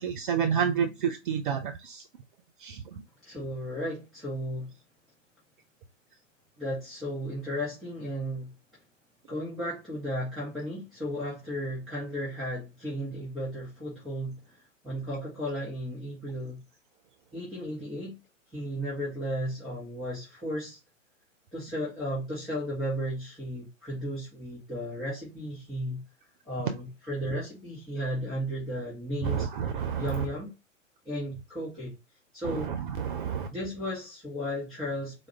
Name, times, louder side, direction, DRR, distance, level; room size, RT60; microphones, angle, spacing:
voice 1, 0.0-2.0 2.6-2.8 29.2-30.0 33.0-33.5, right 7 dB, 45° right, 0.4 m, -29 dB
voice 2, 3.2-4.7 6.6-8.5 9.3-14.6 14.8-16.6 17.3-18.2 18.5-20.8 21.5-26.0 26.4-29.5 30.0-30.5 31.1-32.0 32.3-32.7 33.5-35.3, equal, ahead, 1.7 m, -34 dB
4.7 x 2.0 x 3.3 m
figure-of-eight pair, 105°, 39 cm